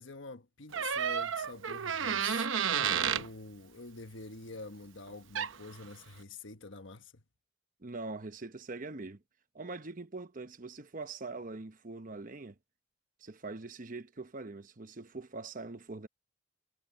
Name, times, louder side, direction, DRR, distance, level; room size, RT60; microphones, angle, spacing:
voice 1, 0.0-2.5 3.0-7.2, left 3 dB, 65° left, 1.3 m, -47 dB
Door, 0.7-3.3 5.1-5.2 5.3-5.7, right 7 dB, 70° right, 0.8 m, -31 dB
voice 2, 7.8-9.2 9.5-12.5 13.2-16.1, right 3 dB, 40° right, 0.9 m, -43 dB
head